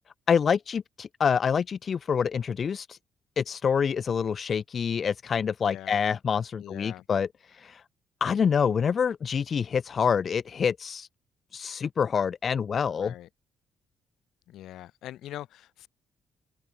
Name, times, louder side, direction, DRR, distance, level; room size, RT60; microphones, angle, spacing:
voice 1, 0.3-3.0 3.4-7.8 8.2-11.1 11.5-13.1, left 6 dB, 50° left, 0.4 m, -26 dB
voice 2, 5.6-6.0 6.6-7.0 13.0-13.3 14.5-15.9, left 13 dB, 85° left, 4.4 m, -42 dB
open air
cardioid pair, 90°, 0 cm